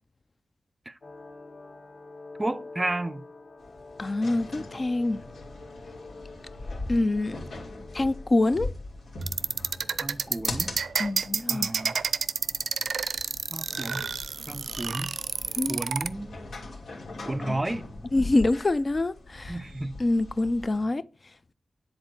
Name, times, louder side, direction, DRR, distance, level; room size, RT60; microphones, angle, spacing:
sound 1, 1.0-8.6, left 3 dB, 50° left, 2.0 m, -47 dB
voice 1, 2.4-3.2 10.0-10.7 11.5-12.0 13.5-14.0 14.5-15.1 15.7-16.4 17.2-17.9 19.5-20.0, right 1 dB, 20° right, 0.5 m, -32 dB
sound 2, 3.6-20.9, left 2 dB, 85° left, 2.8 m, -41 dB
voice 2, 4.0-5.2 6.9-7.4 7.9-8.7 11.0-11.7 15.6-15.8 17.5-17.6 18.1-19.6 20.0-21.0, left 2 dB, 30° left, 0.4 m, -25 dB
sound 3, 9.2-16.1, right 6 dB, 75° right, 0.5 m, -29 dB
10.5 x 4.4 x 7.8 m
wide cardioid pair, 120°, 0 cm